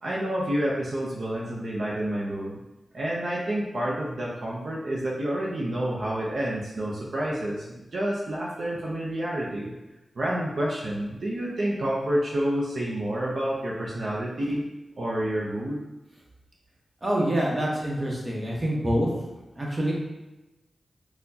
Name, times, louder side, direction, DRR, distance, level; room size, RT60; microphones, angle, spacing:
voice 1, 0.0-2.6 2.9-9.7 10.2-14.6 15.0-15.9, right 1 dB, 65° right, -5 dB, 0.5 m, -29 dB
voice 2, 17.0-19.1 19.6-19.9, right 1 dB, 30° right, -3 dB, 1.0 m, -26 dB
4.3 x 2.1 x 2.7 m, 1.0 s
cardioid pair, 60°, 0 cm